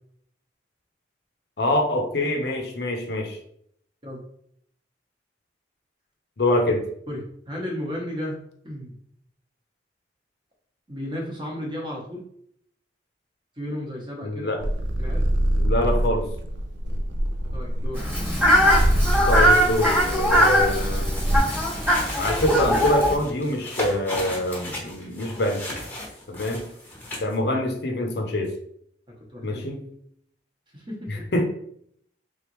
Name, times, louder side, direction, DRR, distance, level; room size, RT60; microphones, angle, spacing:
voice 1, 1.6-3.4 6.4-6.8 14.2-14.6 15.5-16.3 19.3-21.1 22.2-25.6 26.3-26.7 27.2-28.5 29.4-29.8 31.1-31.4, left 1 dB, 60° left, 3 dB, 0.7 m, -25 dB
voice 2, 7.5-8.4 8.6-8.9 10.9-12.2 13.6-14.5 15.0-15.2 17.5-18.0 29.3-29.6 30.7-31.2, left 1 dB, 25° right, -1 dB, 1.0 m, -33 dB
sound 1, 14.6-21.4, right 1 dB, 75° right, 0.5 m, -25 dB
Fowl, 17.9-23.1, equal, 10° right, 1.1 m, -21 dB
sound 2, 18.4-27.3, left 1 dB, 10° left, 0.9 m, -36 dB
3.8 x 3.3 x 3.1 m, 0.68 s
head